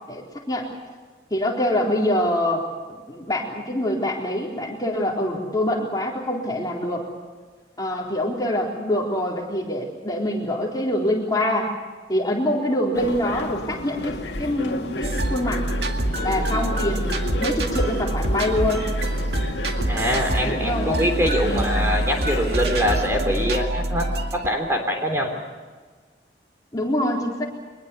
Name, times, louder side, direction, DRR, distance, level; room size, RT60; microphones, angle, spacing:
voice 1, 0.1-0.7 1.3-7.1 7.8-11.7 12.1-15.7 16.2-18.8 20.5-20.9 21.4-21.9 26.7-27.5, left 1 dB, 20° left, -1 dB, 3.8 m, -25 dB
sound 1, 12.9-23.5, left 1 dB, 70° left, 2.1 m, -32 dB
sound 2, 15.0-24.5, right 1 dB, 60° right, 2.2 m, -26 dB
voice 2, 19.9-25.3, equal, 15° right, 2 dB, 3.6 m, -24 dB
24.5 x 21.0 x 7.0 m, 1.4 s
head